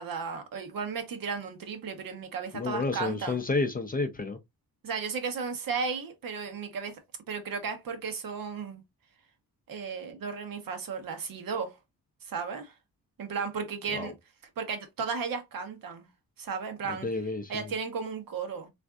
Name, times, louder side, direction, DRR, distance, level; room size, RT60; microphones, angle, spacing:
voice 1, 0.0-3.4 4.8-6.9 7.3-8.8 9.7-11.8 12.3-12.7 13.2-14.1 14.6-16.1 16.4-17.1 17.5-18.7, right 5 dB, 70° right, 0.9 m, -34 dB
voice 2, 2.5-4.4 13.9-14.1 16.9-17.7, left 3 dB, 25° left, 0.4 m, -31 dB
3.4 x 2.5 x 2.3 m
wide cardioid pair, 135°, 36 cm